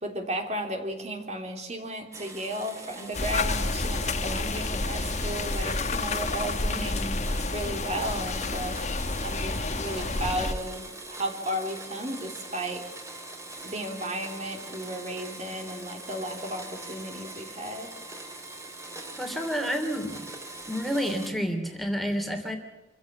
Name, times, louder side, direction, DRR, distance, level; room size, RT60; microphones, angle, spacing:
voice 1, 0.0-6.9 7.5-8.8 9.2-12.9 13.6-17.9, right 1 dB, 40° right, 4 dB, 3.2 m, -34 dB
Domestic sounds home sounds, 2.1-21.3, right 2 dB, 15° right, 3.5 m, -42 dB
sound 1, 3.1-10.5, left 3 dB, 40° left, 1.5 m, -29 dB
voice 2, 6.7-7.1 19.2-20.3 20.7-22.6, equal, ahead, 4 dB, 3.1 m, -30 dB
26.5 x 16.0 x 8.4 m, 1.0 s
head